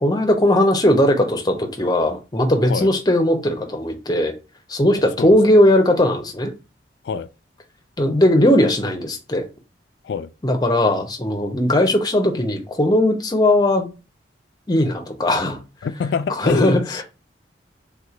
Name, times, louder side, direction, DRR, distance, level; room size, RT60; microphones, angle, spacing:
voice 1, 0.0-4.3 4.7-6.5 8.0-9.5 10.4-13.9 14.7-15.6 16.4-17.0, left 1 dB, 20° left, 0.6 m, -18 dB
voice 2, 5.2-5.6 7.0-7.3 10.0-10.3 15.8-17.0, left 6 dB, 70° left, 0.3 m, -26 dB
3.5 x 2.9 x 2.5 m
head